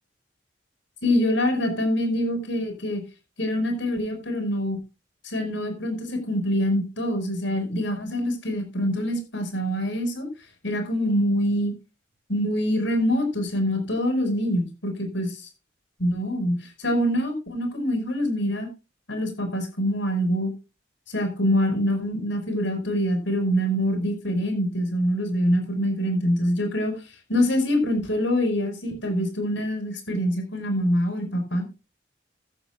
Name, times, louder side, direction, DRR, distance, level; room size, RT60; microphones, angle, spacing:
voice 1, 1.0-3.0 3.4-4.8 5.2-10.3 10.6-11.7 12.3-15.4 16.0-18.7 19.1-20.5 21.1-26.9 27.3-31.7, equal, 90° left, 5 dB, 5.1 m, -25 dB
16.0 x 12.0 x 2.4 m, 0.29 s
head